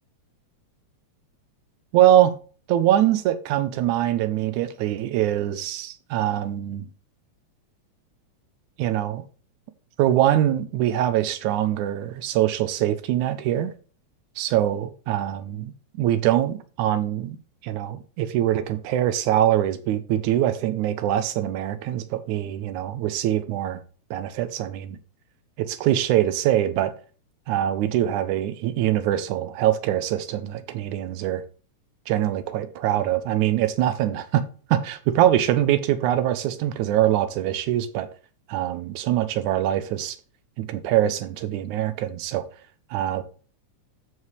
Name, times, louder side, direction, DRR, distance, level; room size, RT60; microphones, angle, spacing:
voice 1, 1.9-2.3 2.7-6.9 8.8-9.2 10.0-13.7 14.4-17.4 17.6-23.8 24.1-25.0 25.6-26.9 27.5-31.4 32.1-34.4 34.7-38.1 38.5-40.2 40.6-42.4 42.9-43.2, right 12 dB, 90° right, 2.1 m, -23 dB
13.5 x 4.8 x 3.2 m
omnidirectional pair, 3.4 m